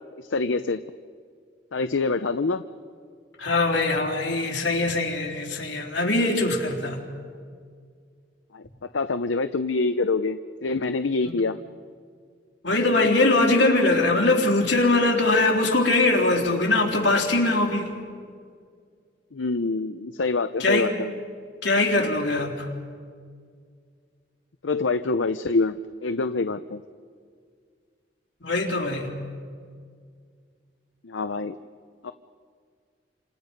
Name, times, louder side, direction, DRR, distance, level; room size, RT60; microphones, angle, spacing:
voice 1, 0.2-0.8 1.7-2.6 8.5-8.6 8.9-11.6 19.3-21.1 24.6-25.8 26.0-26.8 31.0-31.6 32.0-32.1, left 3 dB, 90° left, 10 dB, 0.7 m, -25 dB
voice 2, 3.4-7.0 11.2-11.3 12.6-17.9 20.6-20.9 21.6-22.7 28.4-29.1, left 2 dB, 70° left, 1 dB, 3.9 m, -22 dB
29.5 x 27.0 x 5.3 m, 2.1 s
head